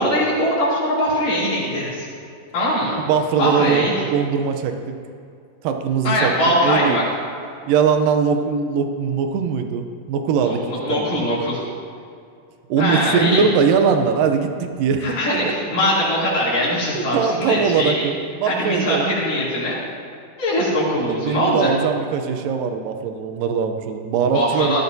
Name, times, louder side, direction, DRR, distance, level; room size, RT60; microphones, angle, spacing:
voice 1, 0.0-2.1 2.5-3.0 3.4-3.9 6.0-7.0 10.4-11.6 12.8-13.4 15.0-18.0 18.4-19.8 20.4-21.7 24.3-24.8, equal, 75° left, -10 dB, 4.4 m, -21 dB
voice 2, 3.0-4.8 5.6-6.3 6.6-7.0 7.7-10.6 10.9-11.4 12.7-15.2 15.4-15.5 16.9-19.1 21.2-24.7, right 6 dB, 85° right, 6 dB, 2.5 m, -21 dB
17.0 x 13.0 x 2.7 m, 2.4 s
omnidirectional pair, 3.8 m